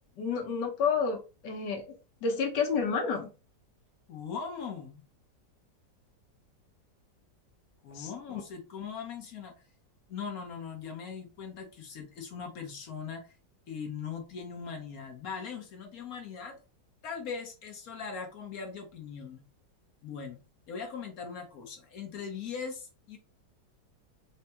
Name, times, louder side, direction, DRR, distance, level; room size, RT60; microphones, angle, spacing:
voice 1, 0.2-1.8 2.2-3.3 7.9-8.1 8.3-8.4, left 5 dB, 75° left, 1.4 m, -30 dB
voice 2, 4.1-5.0 7.8-9.5 10.1-13.3 13.7-16.6 17.0-19.4 20.0-20.4 20.7-23.2, left 6 dB, 60° left, 1.2 m, -40 dB
4.3 x 2.3 x 2.8 m
omnidirectional pair, 1.9 m